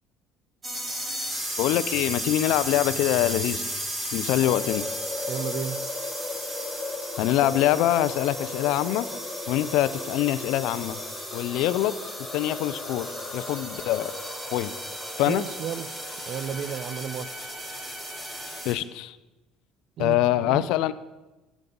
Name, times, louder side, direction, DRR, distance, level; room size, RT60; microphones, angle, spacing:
sound 1, 0.6-18.7, right 1 dB, 20° right, 1.9 m, -35 dB
voice 1, 1.6-3.7 4.1-4.9 7.2-9.1 9.5-11.0 11.3-12.0 12.3-14.2 14.5-14.7 15.2-15.4 18.6-19.2 20.0-20.9, left 13 dB, 75° left, 15 dB, 0.4 m, -24 dB
sound 2, 4.4-18.6, left 3 dB, 20° left, 1.0 m, -38 dB
voice 2, 5.3-5.8 15.3-15.9 16.3-17.3 20.0-20.7, right 9 dB, 50° right, 15 dB, 0.4 m, -33 dB
9.0 x 7.2 x 3.9 m, 1.1 s
cardioid pair, 115°, 0 cm